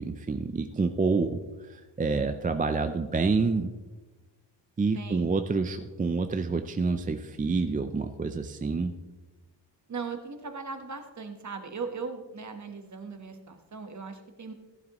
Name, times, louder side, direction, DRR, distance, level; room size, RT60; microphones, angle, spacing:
voice 1, 0.0-1.4 1.7-3.7 4.8-8.9, right 4 dB, 20° right, 7 dB, 0.4 m, -28 dB
voice 2, 4.9-5.4 9.9-14.5, right 4 dB, 40° right, 6 dB, 1.3 m, -38 dB
15.0 x 11.5 x 3.0 m, 1.2 s
wide cardioid pair, 155°, 42 cm